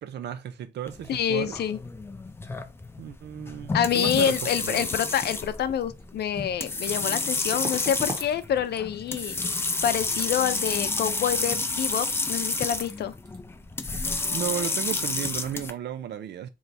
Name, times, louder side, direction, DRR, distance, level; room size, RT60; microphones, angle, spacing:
voice 1, 0.0-1.6 3.0-4.8 14.3-16.5, right 9 dB, 75° right, 0.6 m, -34 dB
sound 1, 0.9-15.7, left 3 dB, 15° left, 0.4 m, -30 dB
voice 2, 1.1-1.8 3.7-9.4 9.8-13.1, left 9 dB, 70° left, 0.5 m, -27 dB
sound 2, 6.0-6.1 7.5-8.3 8.6-9.0 9.2-9.4 12.4-12.5 12.7-13.0 13.2-13.4, right 2 dB, 20° right, 0.9 m, -39 dB
3.4 x 3.1 x 4.0 m
wide cardioid pair, 160°, 17 cm